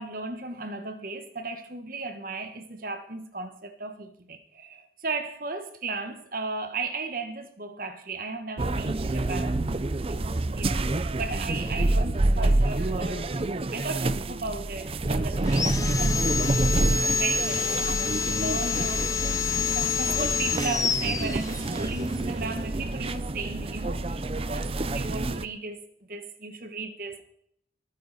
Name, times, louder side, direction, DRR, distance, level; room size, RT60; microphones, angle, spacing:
voice 1, 0.0-9.6 10.1-13.3 13.7-19.3 19.7-25.8 26.1-27.2, right 3 dB, 50° right, 1.4 m, -36 dB
sound 1, 8.6-25.4, right 2 dB, 30° right, 0.5 m, -27 dB
Sawing, 15.4-21.9, left 6 dB, 20° left, 0.8 m, -28 dB
22.5 x 9.5 x 4.2 m
head